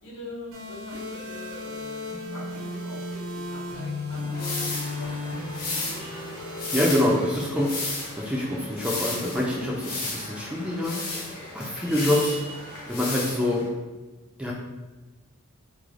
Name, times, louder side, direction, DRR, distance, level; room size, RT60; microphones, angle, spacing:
voice 1, 0.0-3.0 3.3-5.5, left 1 dB, 65° left, -5 dB, 1.1 m, -44 dB
sound 1, 0.5-8.5, left 2 dB, 85° right, 1.1 m, -35 dB
sound 2, 4.3-13.7, left 2 dB, 45° left, 0.8 m, -34 dB
voice 2, 6.7-10.9 11.5-12.4 12.9-13.7 14.4-14.5, left 1 dB, 5° right, -3 dB, 0.3 m, -26 dB
3.2 x 2.1 x 3.6 m, 1.2 s
head